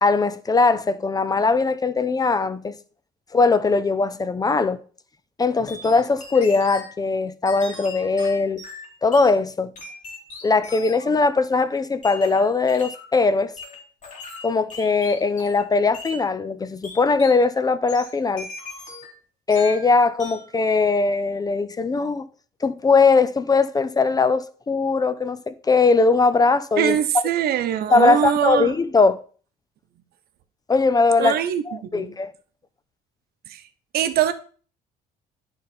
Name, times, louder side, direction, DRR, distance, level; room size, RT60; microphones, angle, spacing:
voice 1, 0.0-2.8 3.3-4.8 5.4-8.6 9.0-9.7 10.4-13.5 14.4-18.5 19.5-22.3 22.6-27.2 27.9-29.2 30.7-31.4 31.7-32.3, left 4 dB, 20° left, 0.5 m, -20 dB
sound 1, 5.7-6.9 7.4-9.3 9.7-11.1 12.0-13.1 13.6-15.7 15.9-16.2 16.8-17.4 17.9-19.2 19.5-19.9 20.2-20.5, left 3 dB, 45° left, 2.7 m, -39 dB
voice 2, 26.8-28.7 31.2-32.1 33.5-33.6 33.9-34.3, right 10 dB, 65° right, 0.8 m, -23 dB
11.5 x 3.9 x 4.3 m
cardioid pair, 110°, 17 cm